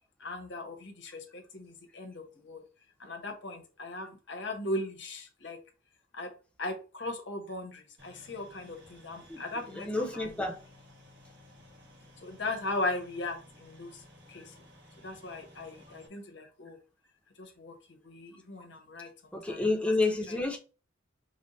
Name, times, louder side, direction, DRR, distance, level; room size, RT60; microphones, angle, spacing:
voice 1, 0.2-2.7 3.0-5.6 6.1-10.4 12.2-14.5 15.0-16.8 17.4-19.7 20.3-20.4, left 2 dB, 65° left, 1.3 m, -38 dB
sound 1, 8.0-16.1, left 1 dB, 60° right, 1.8 m, -56 dB
voice 2, 9.8-10.6 19.3-20.6, left 2 dB, 5° left, 0.9 m, -29 dB
5.3 x 2.4 x 4.1 m
head